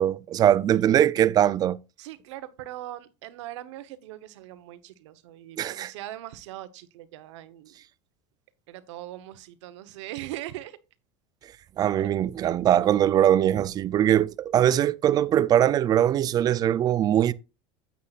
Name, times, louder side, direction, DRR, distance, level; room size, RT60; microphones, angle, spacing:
voice 1, 0.0-1.8 5.6-5.9 11.8-17.3, right 11 dB, 25° right, 0.4 m, -21 dB
voice 2, 2.0-7.8 8.7-10.8 12.0-12.1 12.4-12.5, right 14 dB, 80° right, 1.0 m, -40 dB
9.8 x 8.4 x 2.4 m
supercardioid pair, 145°, 15 cm